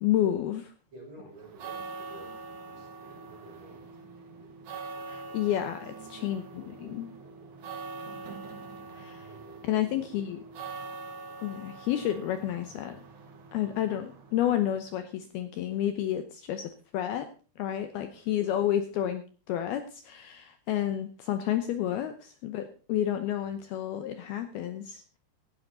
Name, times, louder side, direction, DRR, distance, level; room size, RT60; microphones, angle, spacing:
voice 1, 0.0-0.7 5.1-7.1 8.9-9.3 9.7-10.4 11.4-13.0 13.5-17.3 17.6-19.2 19.5-25.2, left 11 dB, 80° left, 9 dB, 2.3 m, -30 dB
voice 2, 0.9-4.5 5.2-5.6 5.9-7.7 8.9-9.9 14.4-14.5 18.1-18.4, right 2 dB, 25° right, -2 dB, 7.1 m, -53 dB
sound 1, 1.4-14.9, right 4 dB, 50° right, 2.9 m, -44 dB
16.0 x 11.5 x 4.0 m, 0.36 s
omnidirectional pair, 5.4 m